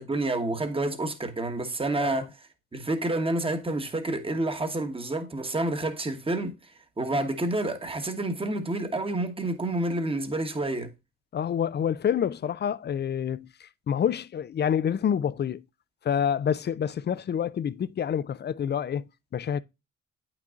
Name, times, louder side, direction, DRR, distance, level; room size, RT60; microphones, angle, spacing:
voice 1, 0.0-2.3 2.7-6.5 7.0-10.9, right 2 dB, 20° right, 1.1 m, -29 dB
voice 2, 11.3-13.5 13.9-15.6 16.0-19.0 19.3-19.6, left 8 dB, 35° left, 0.4 m, -27 dB
8.6 x 6.0 x 2.4 m
cardioid pair, 90°, 30 cm